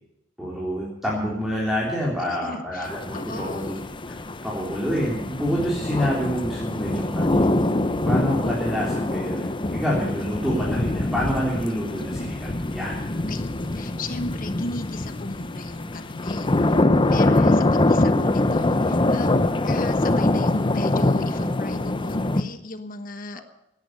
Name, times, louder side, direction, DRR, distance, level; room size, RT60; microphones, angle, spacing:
voice 1, 0.4-3.7 4.1-4.2 4.4-7.4 8.1-12.9 17.1-17.6 23.3-23.4, equal, ahead, -5 dB, 3.7 m, -27 dB
voice 2, 2.2-3.8 13.3-16.7 17.1-23.4, left 2 dB, 45° left, 9 dB, 1.3 m, -36 dB
sound 1, 2.8-22.4, left 2 dB, 25° left, 0.8 m, -24 dB
18.0 x 10.5 x 6.7 m, 0.80 s
head